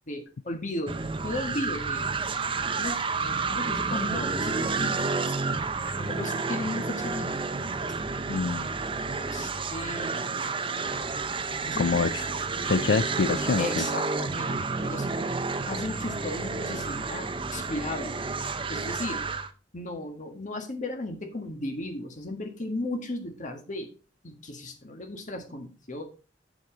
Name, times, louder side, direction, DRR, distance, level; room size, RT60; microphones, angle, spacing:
voice 1, 0.1-2.1 2.7-5.3 6.0-7.7 9.3-10.3 11.6-12.1 13.6-15.1 15.7-18.2 18.7-19.2 19.7-23.9 24.2-26.0, left 2 dB, 45° left, 4 dB, 1.6 m, -35 dB
sound 1, 0.9-19.5, right 4 dB, 30° right, 0.7 m, -30 dB
voice 2, 8.3-8.7 11.8-12.3 12.7-13.8, left 4 dB, 70° left, 11 dB, 0.5 m, -26 dB
8.1 x 7.5 x 3.8 m, 0.35 s
head